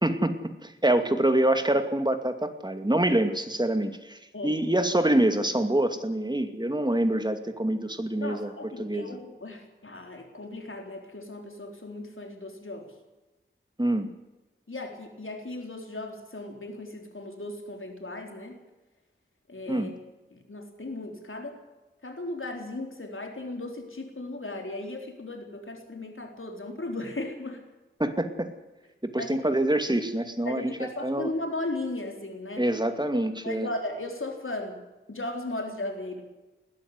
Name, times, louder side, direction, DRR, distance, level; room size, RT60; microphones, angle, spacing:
voice 1, 0.0-0.3 0.6-8.5 8.8-9.2 13.8-14.1 19.7-19.9 28.0-28.5 29.0-31.3 32.6-33.7, right 1 dB, 20° right, 7 dB, 2.5 m, -26 dB
voice 2, 8.2-12.9 14.7-18.6 19.5-19.9 20.5-21.5 22.0-27.6 29.2-29.5 30.4-32.6 33.4-34.8 35.1-36.2, left 2 dB, 75° left, 3 dB, 4.1 m, -36 dB
20.5 x 13.0 x 9.8 m, 1.1 s
wide cardioid pair, 50°, 21 cm